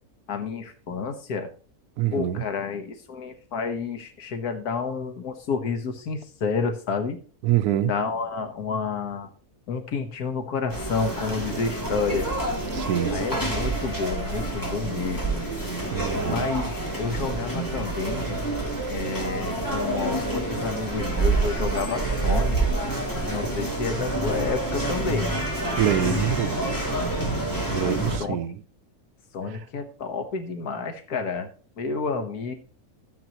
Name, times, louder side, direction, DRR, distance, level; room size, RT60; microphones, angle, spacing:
voice 1, 0.3-1.5 2.1-7.2 7.8-9.3 9.7-12.3 13.1-15.5 16.1-18.4 18.9-22.6 23.3-25.3 26.0-26.3 27.8-28.4 29.3-31.5 31.8-32.5, left 5 dB, 90° left, 1.7 m, -30 dB
voice 2, 2.0-2.4 7.4-7.9 12.7-13.2 15.9-16.5 25.8-26.6 27.7-28.6, right 11 dB, 90° right, 1.2 m, -25 dB
sound 1, 10.7-28.2, right 2 dB, 15° left, 2.9 m, -27 dB
13.0 x 7.7 x 3.0 m
omnidirectional pair, 1.6 m